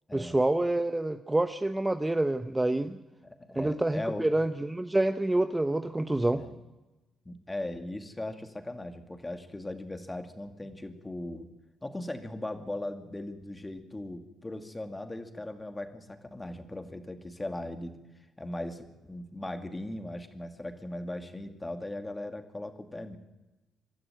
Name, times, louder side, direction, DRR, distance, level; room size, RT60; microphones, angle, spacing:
voice 1, 0.1-3.0 3.6-6.4, right 2 dB, 15° right, 9 dB, 0.9 m, -27 dB
voice 2, 3.2-4.3 6.3-6.6 7.2-11.5 11.8-18.0 18.4-23.2, left 1 dB, 15° left, 7 dB, 2.4 m, -38 dB
25.5 x 12.5 x 9.1 m, 1.1 s
cardioid pair, 90°, 0 cm